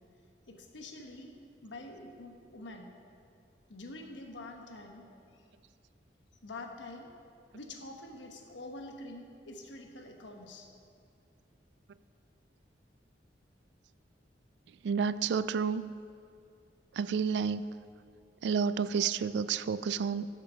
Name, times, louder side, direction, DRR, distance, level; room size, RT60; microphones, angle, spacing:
voice 1, 0.5-1.3 1.6-2.9 3.7-5.1 5.3-5.4 6.4-7.1 7.5-10.7, left 2 dB, 80° left, 3 dB, 1.2 m, -46 dB
voice 2, 14.8-15.9 16.9-17.7 18.4-20.3, right 6 dB, 65° right, 15 dB, 0.3 m, -30 dB
12.5 x 7.3 x 5.0 m, 2.4 s
head